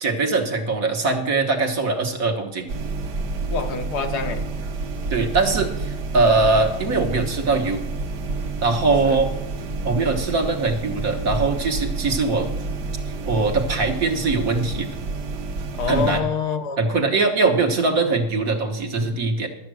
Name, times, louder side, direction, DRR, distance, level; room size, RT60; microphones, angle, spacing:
voice 1, 0.0-2.8 5.1-7.8 8.6-9.3 9.8-12.5 13.3-14.9 15.9-16.3 16.8-19.5, right 3 dB, 60° right, 3 dB, 1.7 m, -21 dB
sound 1, 2.7-16.2, right 3 dB, 85° right, 1.6 m, -29 dB
voice 2, 3.5-4.5 9.0-9.2 15.8-17.1, left 5 dB, 75° left, 6 dB, 1.5 m, -26 dB
12.5 x 7.4 x 6.2 m, 0.91 s
omnidirectional pair, 1.8 m